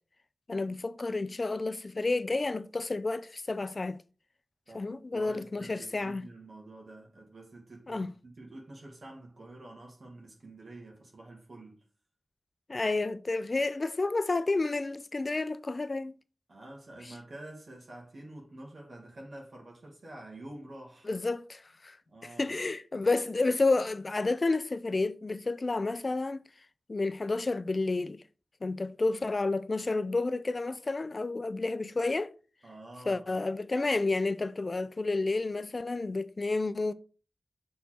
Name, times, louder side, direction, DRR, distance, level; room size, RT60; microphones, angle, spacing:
voice 1, 0.5-4.0 4.7-6.2 7.9-8.1 12.7-16.1 21.1-22.0 22.2-26.4 26.9-28.2 28.6-32.3 33.1-36.9, left 3 dB, 45° left, 0.4 m, -30 dB
voice 2, 4.7-11.8 16.5-21.1 22.1-22.5 32.6-33.5, right 2 dB, 65° right, 1.9 m, -48 dB
6.5 x 4.1 x 4.5 m
wide cardioid pair, 90°, 0 cm